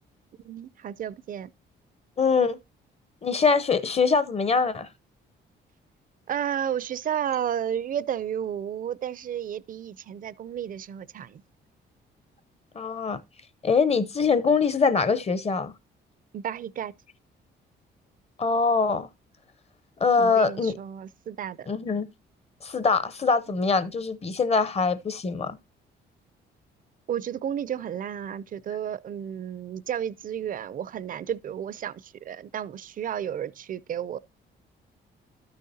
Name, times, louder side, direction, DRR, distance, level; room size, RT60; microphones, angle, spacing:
voice 1, 0.4-1.5 6.3-11.4 16.3-16.9 20.2-21.7 27.1-34.2, right 9 dB, 45° right, 0.4 m, -32 dB
voice 2, 2.2-2.6 3.2-4.9 12.7-13.2 13.6-15.7 18.4-19.1 20.0-20.8 21.7-22.1 22.6-25.6, left 5 dB, 30° left, 0.7 m, -23 dB
12.5 x 6.5 x 2.7 m
cardioid pair, 90°, 20 cm